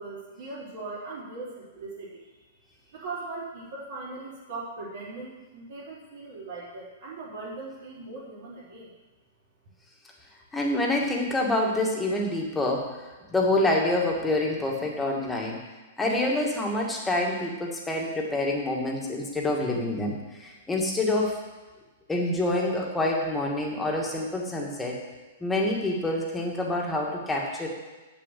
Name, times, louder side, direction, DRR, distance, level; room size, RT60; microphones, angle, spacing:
voice 1, 0.0-2.2 2.7-8.9, right 3 dB, 65° right, -9 dB, 4.4 m, -39 dB
voice 2, 10.5-12.9 13.3-15.6 16.0-21.4 22.1-25.0 25.4-27.7, left 2 dB, 10° left, -1 dB, 2.3 m, -27 dB
7.7 x 7.6 x 8.5 m, 1.2 s
hypercardioid pair, 135°, 0 cm